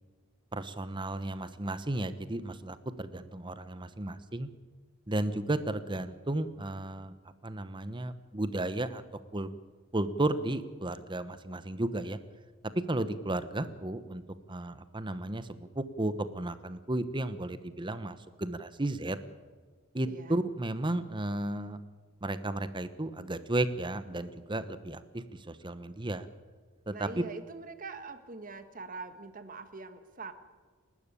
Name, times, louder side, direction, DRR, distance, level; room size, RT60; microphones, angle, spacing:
voice 1, 0.5-4.5 5.1-7.1 7.4-9.0 9.3-9.5 9.9-12.2 12.7-14.2 14.5-19.2 19.9-21.8 22.2-26.3 26.9-27.2, right 1 dB, 25° right, 12 dB, 1.0 m, -33 dB
voice 2, 20.1-20.4 26.9-30.3, right 3 dB, 40° right, 9 dB, 1.7 m, -43 dB
29.0 x 12.5 x 8.4 m, 1.4 s
head